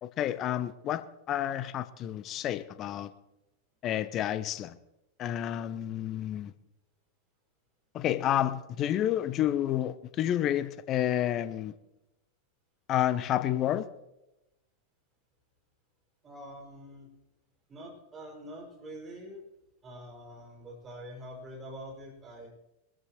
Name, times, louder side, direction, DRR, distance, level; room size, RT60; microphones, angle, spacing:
voice 1, 0.0-3.1 3.8-4.8 5.2-6.5 7.9-11.7 12.9-13.9, left 11 dB, 35° left, 14 dB, 0.8 m, -30 dB
voice 2, 16.2-17.1 17.7-19.4 19.8-22.5, equal, 20° right, 0 dB, 6.1 m, -45 dB
23.5 x 14.0 x 3.1 m, 0.91 s
figure-of-eight pair, 90°, 0 cm